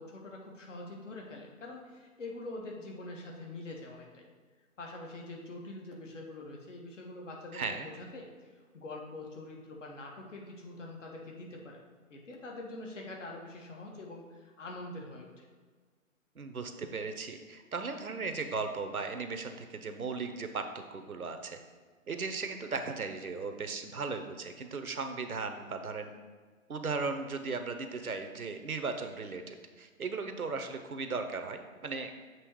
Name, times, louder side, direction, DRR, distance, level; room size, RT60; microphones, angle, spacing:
voice 1, 0.0-4.3 4.8-8.3 8.7-11.8 12.1-15.4, left 2 dB, 60° left, 0 dB, 1.5 m, -44 dB
voice 2, 7.5-7.9 16.4-20.6 20.9-21.6 22.1-26.1 26.7-32.1, right 4 dB, 85° right, 6 dB, 0.9 m, -37 dB
7.6 x 3.1 x 4.7 m, 1.5 s
figure-of-eight pair, 130°, 42 cm